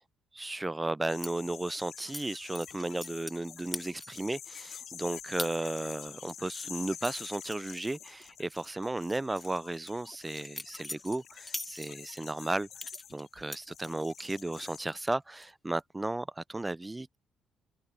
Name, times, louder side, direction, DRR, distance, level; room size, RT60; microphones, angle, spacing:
voice 1, 0.4-12.7 13.1-17.2, right 2 dB, 15° right, 0.3 m, -34 dB
sound 1, 1.1-14.8, left 9 dB, 65° left, 2.8 m, -48 dB
sound 2, 1.2-1.3 2.1-2.2 2.6-3.4 3.7-4.3 4.7-4.8 5.4-5.5 5.9-8.2 8.5-8.7 9.1-12.2 12.8-14.3 14.7-15.1 15.4-15.8, left 1 dB, 10° left, 1.2 m, -42 dB
cardioid pair, 90°, 0 cm